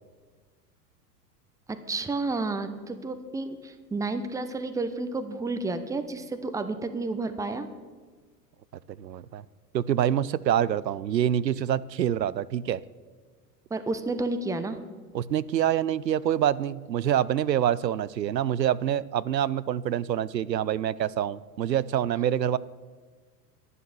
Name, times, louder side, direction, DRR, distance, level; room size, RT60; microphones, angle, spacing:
voice 1, 1.9-7.7 13.7-14.8, right 3 dB, 5° right, 9 dB, 0.8 m, -31 dB
voice 2, 9.0-9.4 9.7-12.8 15.1-22.6, right 10 dB, 85° right, 20 dB, 0.6 m, -26 dB
11.0 x 10.5 x 7.0 m, 1.5 s
figure-of-eight pair, 90°, 49 cm